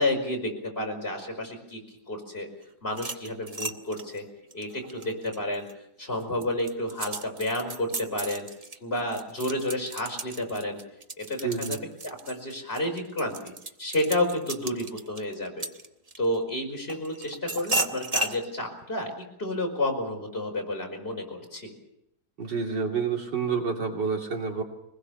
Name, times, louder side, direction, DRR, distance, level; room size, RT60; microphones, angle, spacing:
voice 1, 0.0-1.8 2.1-2.5 2.8-4.2 4.5-5.7 6.0-8.5 8.8-10.8 11.2-11.8 12.0-15.7 16.2-19.1 19.4-21.7, left 1 dB, 30° left, 1 dB, 5.4 m, -30 dB
sound 1, 2.9-5.7 6.2-16.3 16.9-18.4, right 2 dB, 30° right, 0.7 m, -35 dB
voice 2, 11.4-11.8 22.4-24.6, right 5 dB, 70° right, 1 dB, 3.5 m, -28 dB
24.0 x 20.5 x 7.0 m, 0.80 s
omnidirectional pair, 2.0 m